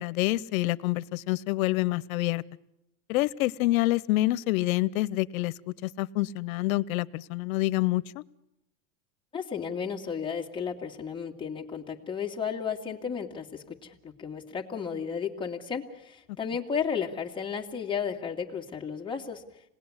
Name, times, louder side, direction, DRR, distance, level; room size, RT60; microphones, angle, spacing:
voice 1, 0.0-2.4 3.1-5.5 5.8-8.2, left 18 dB, 75° left, 18 dB, 1.0 m, -27 dB
voice 2, 9.3-19.4, left 7 dB, 10° left, 0 dB, 2.1 m, -33 dB
27.5 x 19.5 x 9.8 m, 0.88 s
supercardioid pair, 150°, 41 cm